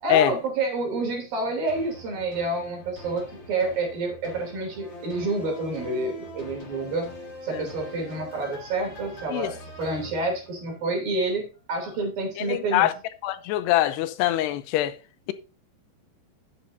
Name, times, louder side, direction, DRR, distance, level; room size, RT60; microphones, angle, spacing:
voice 1, 0.0-7.1 7.4-12.9, right 2 dB, 60° right, 4.7 m, -28 dB
sound 1, 1.7-11.1 11.5-11.6, equal, 30° left, 3.2 m, -43 dB
voice 2, 12.4-12.9 13.2-15.0, left 13 dB, 90° left, 2.8 m, -23 dB
11.0 x 8.5 x 2.7 m
omnidirectional pair, 4.8 m